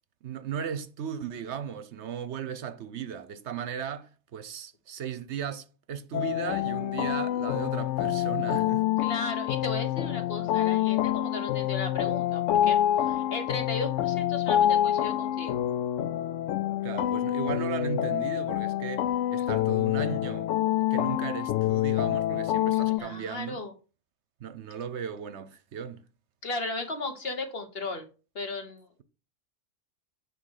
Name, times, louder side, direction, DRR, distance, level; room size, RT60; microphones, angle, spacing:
voice 1, 0.2-8.9 16.8-19.1 19.3-20.5 20.8-23.6 24.4-26.0, right 7 dB, 65° right, 0.9 m, -36 dB
sound 1, 6.1-23.0, left 12 dB, 75° left, 0.9 m, -27 dB
voice 2, 9.0-12.8 13.1-15.6 22.7-23.7 26.4-28.1 28.3-29.0, left 3 dB, 50° left, 1.5 m, -35 dB
9.8 x 3.3 x 6.4 m
omnidirectional pair, 1.3 m